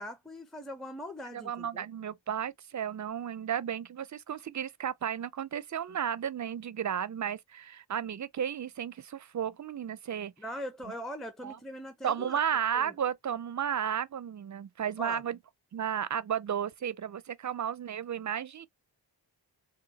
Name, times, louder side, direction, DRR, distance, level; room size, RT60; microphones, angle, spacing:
voice 1, 0.0-1.9 10.4-12.4 12.7-12.9 15.0-15.2, equal, ahead, 0.6 m, -41 dB
voice 2, 1.3-10.3 10.9-11.0 11.4-11.6 12.0-15.4 15.7-18.7, right 8 dB, 40° right, 0.5 m, -33 dB
3.5 x 2.2 x 2.8 m
cardioid pair, 40°, 47 cm